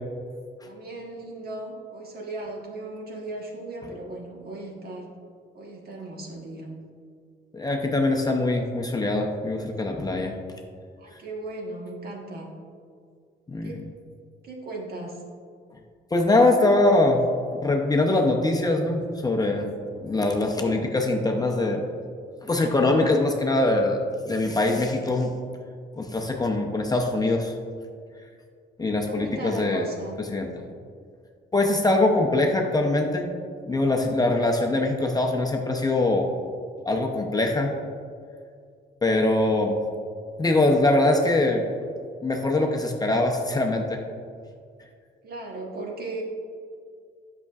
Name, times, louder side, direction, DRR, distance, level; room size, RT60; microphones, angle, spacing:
voice 1, 0.6-5.1 5.5-6.7 11.0-12.5 13.6-13.9 14.4-15.2 29.1-30.1 45.2-46.2, right 2 dB, 50° right, 0 dB, 1.3 m, -36 dB
voice 2, 7.5-10.4 11.1-11.2 13.5-13.8 16.1-17.2 17.5-19.7 20.0-21.8 22.4-25.3 26.0-27.5 28.8-29.9 30.3-30.5 31.5-33.3 33.7-36.3 36.8-37.7 39.0-39.8 40.4-41.6 42.2-44.0, left 2 dB, 20° left, 1 dB, 0.6 m, -23 dB
8.1 x 5.7 x 2.4 m, 2.2 s
cardioid pair, 90°, 20 cm